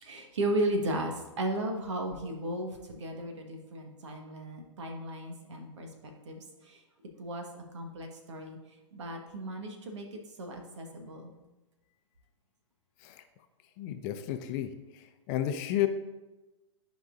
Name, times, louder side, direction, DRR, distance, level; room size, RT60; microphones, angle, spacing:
voice 1, 0.0-5.9 6.2-6.8 7.2-8.6 8.9-11.3, right 1 dB, 65° right, 3 dB, 1.3 m, -35 dB
voice 2, 13.8-14.7 15.3-15.9, left 12 dB, 35° left, 8 dB, 0.6 m, -31 dB
11.5 x 5.2 x 2.6 m, 1.1 s
figure-of-eight pair, 115°, 16 cm